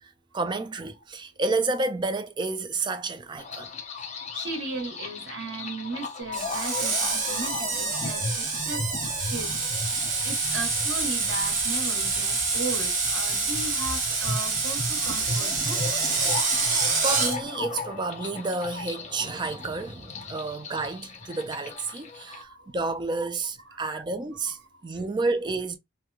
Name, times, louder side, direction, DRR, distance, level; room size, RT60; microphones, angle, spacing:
voice 1, 0.0-3.7 17.0-25.8, right 3 dB, 25° right, 0.4 m, -30 dB
sound 1, 3.4-22.4, left 3 dB, 35° left, 0.6 m, -37 dB
voice 2, 4.3-8.9 9.3-9.5 10.2-15.8 20.2-20.4 22.3-22.7 23.2-23.3 23.7-24.0 24.7-24.9, right 3 dB, 85° right, 1.2 m, -36 dB
Screech, 6.3-17.4, right 4 dB, 45° right, 1.0 m, -27 dB
3.0 x 2.2 x 2.3 m
head